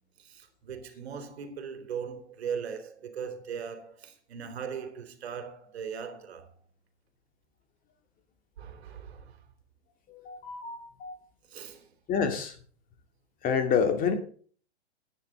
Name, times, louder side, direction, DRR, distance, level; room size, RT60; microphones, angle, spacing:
voice 1, 0.2-6.5 8.6-9.4 11.4-11.9, right 7 dB, 65° right, 2.9 m, -39 dB
voice 2, 10.1-11.2 12.1-12.5 13.4-14.1, left 6 dB, 25° left, 2.3 m, -28 dB
13.0 x 10.5 x 3.7 m
hypercardioid pair, 130°, 33 cm